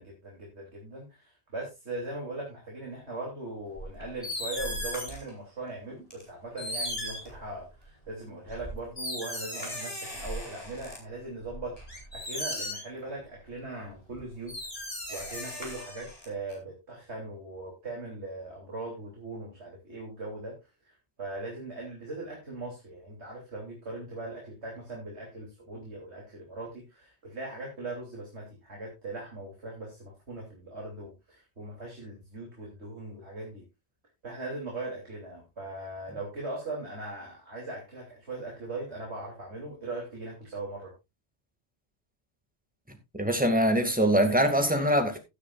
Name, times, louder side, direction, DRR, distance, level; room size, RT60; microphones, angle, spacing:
voice 1, 0.0-20.5 20.8-33.6 34.2-40.9, right 2 dB, 80° right, -1 dB, 3.6 m, -40 dB
sound 1, 3.8-5.3 6.1-6.2 6.6-7.9 8.5-11.0 11.4-13.0 14.1-14.2 14.5-16.5, left 1 dB, 35° left, 4.5 m, -37 dB
voice 2, 43.2-45.2, equal, 10° right, 5 dB, 2.3 m, -23 dB
15.5 x 9.6 x 2.5 m, 0.24 s
omnidirectional pair, 1.1 m